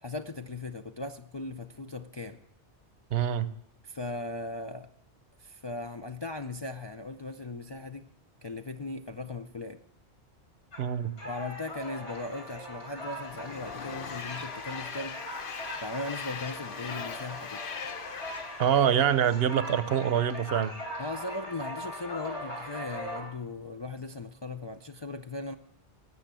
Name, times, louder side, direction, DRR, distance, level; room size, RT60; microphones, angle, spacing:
voice 1, 0.0-2.4 3.8-4.9 5.4-8.1 8.4-9.8 11.2-15.2 15.8-17.6 21.0-25.5, left 2 dB, 40° left, 5 dB, 0.4 m, -38 dB
voice 2, 3.1-3.5 10.8-11.1 18.6-20.7, right 9 dB, 65° right, 14 dB, 0.9 m, -25 dB
sound 1, 10.7-23.2, left 1 dB, 85° left, 3.7 m, -40 dB
Train, 12.5-20.0, left 7 dB, 55° left, 0.8 m, -41 dB
18.5 x 7.0 x 7.5 m, 0.75 s
omnidirectional pair, 1.1 m